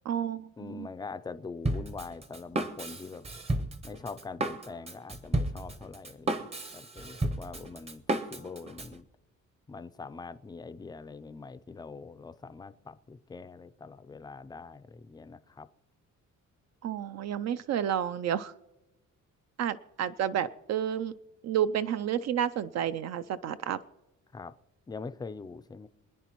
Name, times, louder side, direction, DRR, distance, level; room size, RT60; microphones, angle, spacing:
voice 1, 0.1-0.9 16.8-18.5 19.6-21.1 21.4-23.8, right 9 dB, 60° right, 13 dB, 0.4 m, -30 dB
voice 2, 0.6-3.2 3.8-9.0 9.7-15.7 24.3-24.5 24.9-25.9, left 4 dB, 15° left, 12 dB, 0.4 m, -43 dB
Drum kit, 1.6-8.9, right 1 dB, 20° right, 0.7 m, -33 dB
27.0 x 10.0 x 3.0 m, 1.0 s
cardioid pair, 160°, 30 cm